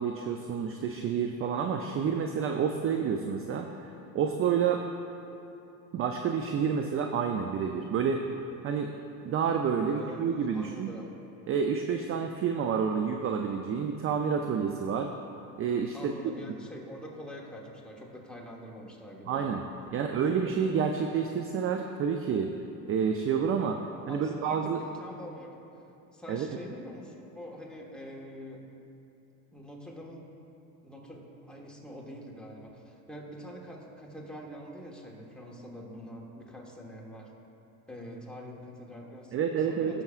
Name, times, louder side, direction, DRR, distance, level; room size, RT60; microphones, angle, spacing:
voice 1, 0.0-3.7 4.1-4.8 5.9-8.2 8.6-8.9 9.2-10.9 11.5-15.1 15.6-16.1 19.3-19.6 19.9-22.5 22.9-23.8 24.1-24.8 26.3-26.5 39.3-40.0, right 6 dB, 30° right, 4 dB, 0.4 m, -29 dB
voice 2, 9.9-10.2 10.5-11.1 15.9-19.4 19.9-20.2 20.5-20.7 24.1-25.6 26.1-28.7 29.5-30.2 30.8-37.3 37.9-40.0, equal, ahead, -2 dB, 1.4 m, -45 dB
16.0 x 6.7 x 2.4 m, 2.9 s
supercardioid pair, 100°, 47 cm